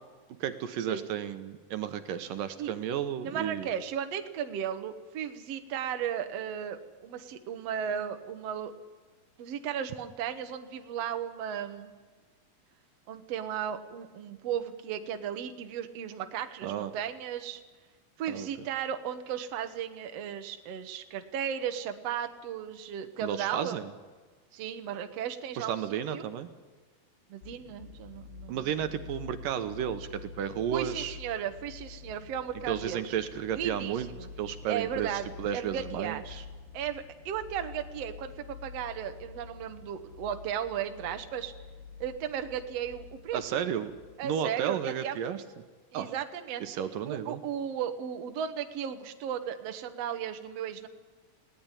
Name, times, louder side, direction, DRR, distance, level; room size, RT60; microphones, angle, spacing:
voice 1, 0.4-3.7 16.6-16.9 18.3-18.5 23.2-23.9 25.6-26.5 28.5-31.2 32.7-34.1 34.4-36.4 43.3-44.0 44.2-45.4 45.9-46.1 46.6-47.4, right 9 dB, 75° right, 9 dB, 2.6 m, -33 dB
voice 2, 3.2-8.7 9.4-11.9 13.1-17.6 18.2-23.8 24.5-26.3 27.3-28.7 30.7-33.2 33.5-34.3 34.6-36.2 36.7-41.5 42.0-43.6 44.2-45.3 45.9-46.6 47.1-50.9, right 9 dB, 55° right, 7 dB, 2.0 m, -35 dB
sound 1, 27.4-44.2, left 5 dB, 75° left, 3.4 m, -47 dB
19.5 x 18.0 x 10.0 m, 1.4 s
omnidirectional pair, 4.1 m